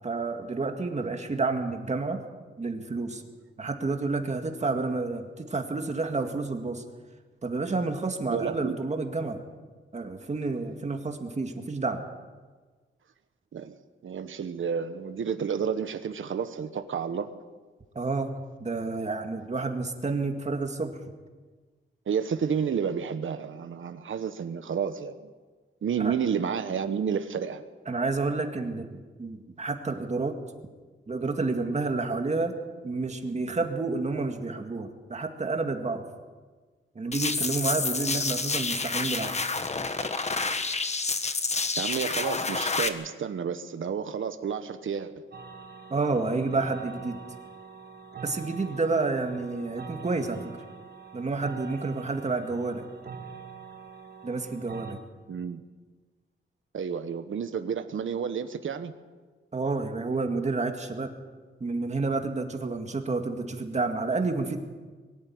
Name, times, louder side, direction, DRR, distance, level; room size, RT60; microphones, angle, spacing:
voice 1, 0.0-2.2 2.6-3.2 3.6-6.8 7.4-9.4 9.9-12.0 18.0-18.3 18.6-21.0 26.0-26.1 27.9-28.9 29.2-30.4 31.1-32.5 32.8-36.1 37.0-39.4 45.9-47.2 48.2-50.5 51.1-52.9 54.2-55.0 59.5-61.1 61.6-64.6, right 3 dB, 35° right, 5 dB, 2.1 m, -29 dB
voice 2, 8.3-8.8 13.5-13.7 14.0-17.3 22.1-25.3 25.8-27.6 41.8-45.2 55.3-55.6 56.7-58.9, right 7 dB, 75° right, 9 dB, 1.2 m, -30 dB
sound 1, 37.1-42.9, left 4 dB, 35° left, 1.3 m, -29 dB
sound 2, 45.3-54.9, right 6 dB, 55° right, 1.9 m, -44 dB
23.0 x 13.0 x 9.6 m, 1.4 s
wide cardioid pair, 145°, 21 cm